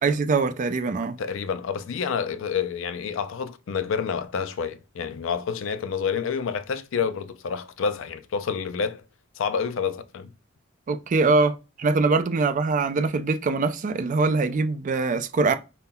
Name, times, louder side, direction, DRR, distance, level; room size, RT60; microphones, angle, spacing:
voice 1, 0.0-1.2 10.9-15.5, right 3 dB, 40° right, 0.3 m, -23 dB
voice 2, 1.2-9.0 9.4-10.3, left 6 dB, 65° left, 0.4 m, -28 dB
5.5 x 2.1 x 2.2 m
head